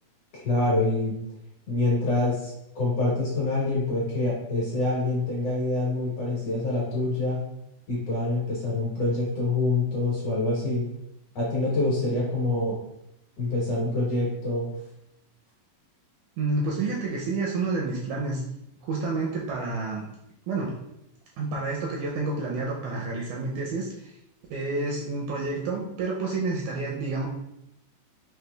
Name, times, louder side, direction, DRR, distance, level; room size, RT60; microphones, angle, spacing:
voice 1, 0.3-1.2 1.7-7.4 7.9-10.9 11.4-12.7 13.4-14.7, left 2 dB, 60° left, -6 dB, 1.8 m, -26 dB
voice 2, 16.4-18.4 18.8-20.1 20.5-20.7 21.4-24.1 24.5-27.3, right 3 dB, 80° right, -2 dB, 1.8 m, -29 dB
5.9 x 2.9 x 2.3 m, 0.82 s
omnidirectional pair, 3.9 m